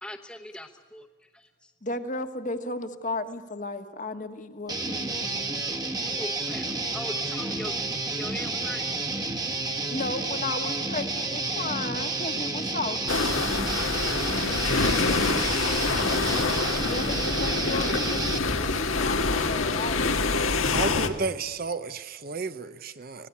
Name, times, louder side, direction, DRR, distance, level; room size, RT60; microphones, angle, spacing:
voice 1, 0.0-1.1 6.1-7.7 8.2-8.9, left 1 dB, 5° left, 1.1 m, -39 dB
voice 2, 1.8-5.5 9.9-13.3 16.7-20.1, left 2 dB, 40° left, 1.5 m, -34 dB
Guitar, 4.7-18.4, right 3 dB, 20° right, 1.3 m, -30 dB
sound 1, 13.1-21.1, left 3 dB, 80° left, 1.7 m, -26 dB
voice 3, 20.7-23.3, right 4 dB, 45° right, 0.7 m, -32 dB
25.5 x 18.0 x 8.5 m
head